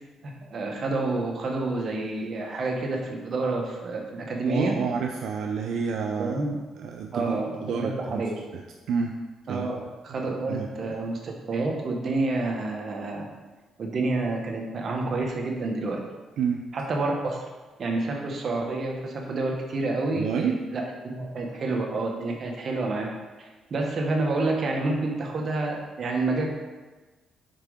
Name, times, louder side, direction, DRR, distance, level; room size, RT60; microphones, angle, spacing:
voice 1, 0.2-4.8 6.2-6.6 7.1-8.3 9.5-13.3 13.8-16.0 16.7-17.4 17.8-23.1 23.4-26.5, right 2 dB, 50° right, 1 dB, 1.3 m, -29 dB
voice 2, 4.5-6.4 6.8-8.2 8.5-9.1 9.5-9.7 10.2-10.7 16.4-16.7 20.1-20.6, right 6 dB, 80° right, 2 dB, 0.5 m, -29 dB
6.0 x 4.5 x 5.0 m, 1.2 s
cardioid pair, 90°, 0 cm